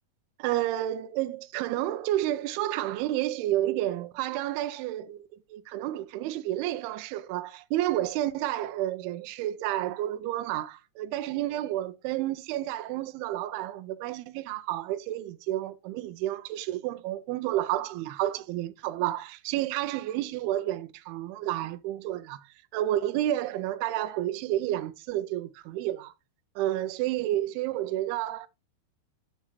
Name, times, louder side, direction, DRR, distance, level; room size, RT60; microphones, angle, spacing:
voice 1, 0.4-22.5 22.7-26.1 26.6-28.5, right 14 dB, 85° right, 2.5 m, -30 dB
7.3 x 6.7 x 3.0 m
omnidirectional pair, 4.6 m